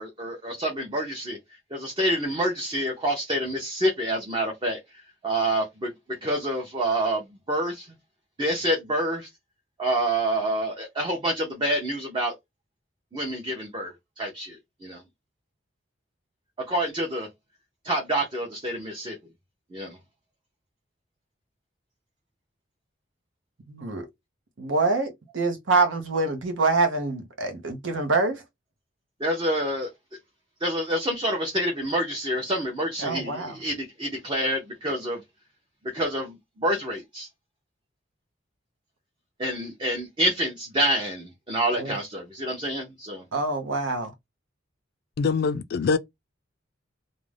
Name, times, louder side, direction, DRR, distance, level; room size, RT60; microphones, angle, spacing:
voice 1, 0.0-1.4 1.7-4.8 5.2-5.9 6.2-7.2 7.5-7.9 8.4-9.3 9.8-12.3 13.1-14.6 14.8-15.0 16.7-17.3 17.8-19.1 19.7-20.0 29.2-29.9 30.6-35.2 35.9-37.3 39.4-43.2, right 1 dB, 25° right, 0.6 m, -27 dB
voice 2, 23.7-24.1 24.6-28.4 33.0-33.6 41.8-42.0 43.3-44.1, right 3 dB, 85° right, 0.7 m, -25 dB
voice 3, 45.2-46.0, left 5 dB, 55° left, 0.3 m, -23 dB
2.4 x 2.1 x 3.2 m
head